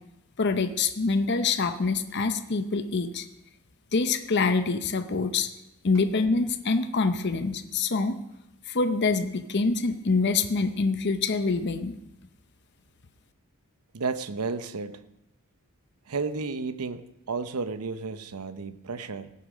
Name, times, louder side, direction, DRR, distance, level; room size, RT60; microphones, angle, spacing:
voice 1, 0.4-3.3 3.9-5.5 5.8-8.2 8.7-11.9, left 4 dB, 50° left, 8 dB, 0.7 m, -25 dB
voice 2, 13.9-15.1 16.1-19.3, right 4 dB, 85° right, 11 dB, 0.7 m, -32 dB
17.0 x 6.9 x 5.2 m, 0.89 s
head